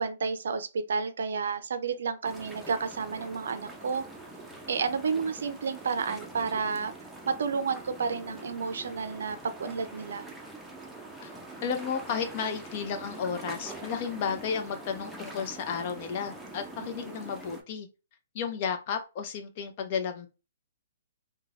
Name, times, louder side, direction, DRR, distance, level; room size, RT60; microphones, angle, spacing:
voice 1, 0.0-4.0 4.7-6.9 7.3-10.3 16.8-17.2, right 5 dB, 70° right, 0.4 m, -31 dB
sound 1, 2.2-17.6, right 2 dB, 5° right, 0.6 m, -44 dB
voice 2, 11.6-17.9 18.3-20.3, left 6 dB, 45° left, 0.6 m, -33 dB
3.1 x 2.2 x 2.4 m
hypercardioid pair, 130°, 0 cm